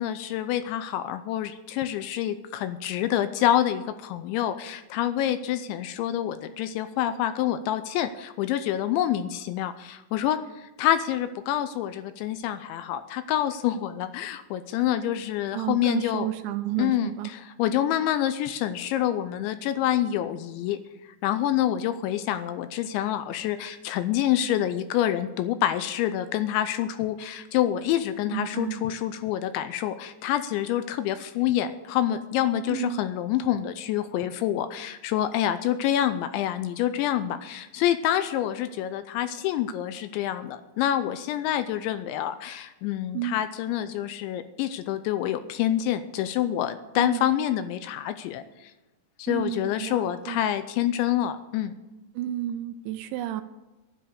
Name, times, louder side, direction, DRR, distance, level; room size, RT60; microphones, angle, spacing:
voice 1, 0.0-16.3 16.8-48.7 49.2-51.7, left 11 dB, 85° left, 11 dB, 2.7 m, -27 dB
voice 2, 15.5-17.3 28.3-28.8 32.7-33.0 43.1-43.4 47.0-47.3 49.3-50.4 52.2-53.4, right 12 dB, 80° right, 11 dB, 2.7 m, -31 dB
12.0 x 10.0 x 6.7 m, 1.1 s
omnidirectional pair, 5.6 m